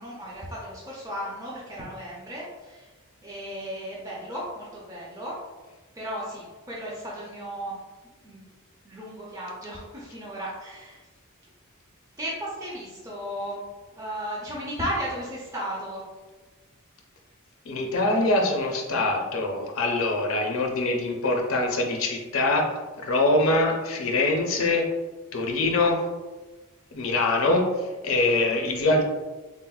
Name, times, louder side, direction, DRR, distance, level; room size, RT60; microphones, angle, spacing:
voice 1, 0.0-2.9 3.2-5.4 6.0-7.7 8.2-8.4 8.8-11.0 12.2-13.6 13.9-16.0, equal, 15° right, -6 dB, 0.4 m, -35 dB
voice 2, 17.6-24.9 25.3-26.1 26.9-29.0, left 2 dB, 70° left, 1 dB, 0.5 m, -24 dB
3.7 x 2.0 x 2.3 m, 1.2 s
head